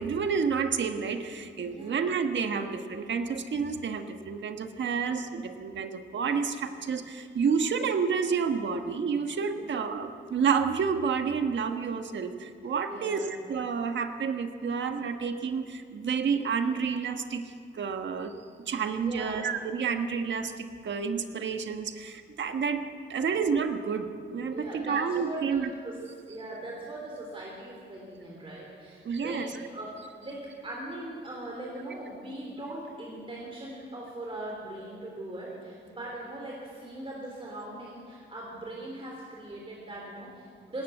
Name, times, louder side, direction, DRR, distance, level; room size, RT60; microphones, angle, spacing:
voice 1, 0.0-17.4 17.7-18.3 18.6-22.8 23.1-25.7 29.0-29.5, right 6 dB, 75° right, 7 dB, 1.4 m, -29 dB
voice 2, 1.6-2.0 9.6-9.7 12.9-13.3 18.9-19.5 23.2-23.3 24.5-40.8, right 1 dB, 30° right, -3 dB, 3.5 m, -40 dB
19.0 x 18.5 x 7.9 m, 2.2 s
wide cardioid pair, 130°, 19 cm